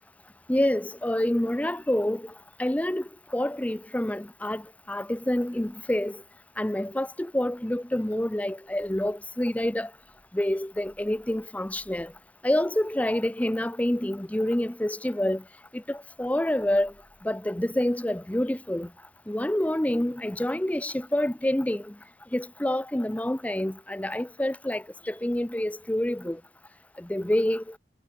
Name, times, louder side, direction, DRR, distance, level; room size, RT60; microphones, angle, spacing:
voice 1, 0.5-2.3 2.6-6.2 6.6-9.9 10.3-12.1 12.4-15.4 15.7-16.9 17.2-18.9 19.3-21.9 22.3-26.4 27.0-27.8, left 1 dB, 10° left, 0.5 m, -27 dB
head